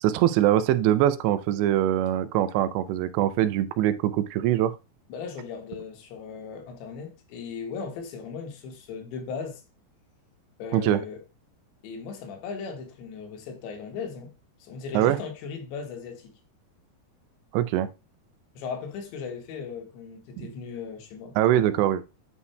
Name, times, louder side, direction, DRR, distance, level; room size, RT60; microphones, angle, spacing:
voice 1, 0.0-4.7 10.7-11.0 14.9-15.2 17.5-17.9 20.4-20.5 21.4-22.1, right 12 dB, 85° right, 2.7 m, -23 dB
voice 2, 5.1-9.6 10.6-11.2 11.8-14.3 14.6-16.3 18.6-21.4, left 5 dB, 85° left, 3.4 m, -37 dB
9.4 x 5.6 x 2.2 m
omnidirectional pair, 5.1 m